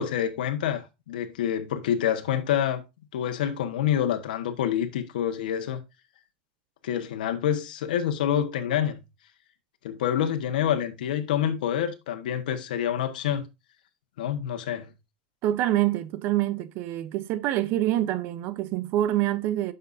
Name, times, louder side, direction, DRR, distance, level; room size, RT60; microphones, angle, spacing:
voice 1, 0.0-2.8 3.1-5.8 6.8-9.0 9.8-13.4 14.2-14.9, left 9 dB, 85° left, 1.3 m, -27 dB
voice 2, 15.4-19.7, right 13 dB, 50° right, 0.7 m, -26 dB
9.6 x 6.7 x 2.6 m
supercardioid pair, 140°, 5 cm